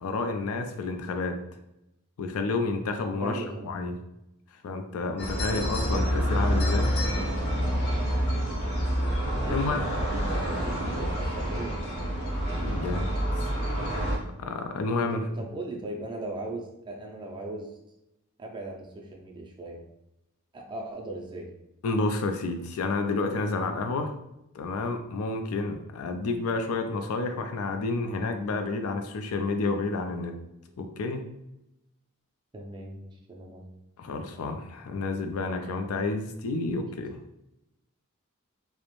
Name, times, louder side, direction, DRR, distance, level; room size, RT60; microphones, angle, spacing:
voice 1, 0.0-1.4 2.2-3.9 4.6-6.9 9.5-9.8 12.6-13.1 14.4-15.2 21.8-24.1 24.5-30.4 30.8-31.2 34.0-37.2, left 3 dB, 85° left, 6 dB, 0.4 m, -30 dB
voice 2, 3.2-3.7 5.5-5.9 9.4-12.0 15.1-17.8 18.4-19.9 20.5-21.5 32.5-33.6, right 2 dB, 20° right, 0 dB, 0.4 m, -38 dB
sound 1, 5.2-14.2, equal, 55° left, 0.7 m, -27 dB
2.4 x 2.0 x 3.0 m, 0.86 s
head